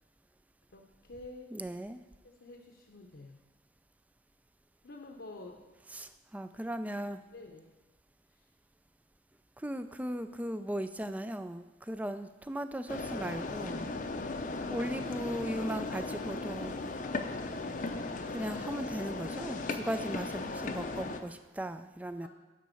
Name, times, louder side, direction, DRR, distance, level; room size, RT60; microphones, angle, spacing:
voice 1, 0.7-1.5 2.2-3.4 4.8-5.7 7.3-7.7 22.2-22.3, left 2 dB, 70° left, 1 dB, 0.9 m, -49 dB
voice 2, 1.5-2.0 5.9-7.2 9.6-13.9 14.7-16.8 18.3-22.3, right 1 dB, 10° right, 10 dB, 0.4 m, -37 dB
sound 1, 12.9-21.2, left 3 dB, 45° left, 0.6 m, -37 dB
10.0 x 4.1 x 7.6 m, 1.2 s
head